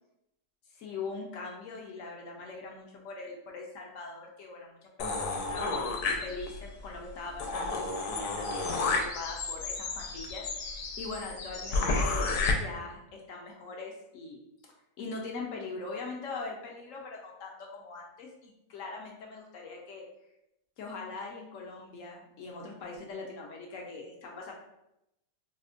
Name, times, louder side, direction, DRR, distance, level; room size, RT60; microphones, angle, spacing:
voice 1, 0.7-4.7 5.0-20.1 20.8-24.5, left 3 dB, 65° left, 0 dB, 0.9 m, -42 dB
sound 1, 5.0-6.7 7.1-7.2 7.4-12.5, left 3 dB, 85° left, 1.1 m, -31 dB
4.2 x 2.1 x 2.4 m, 0.86 s
omnidirectional pair, 1.6 m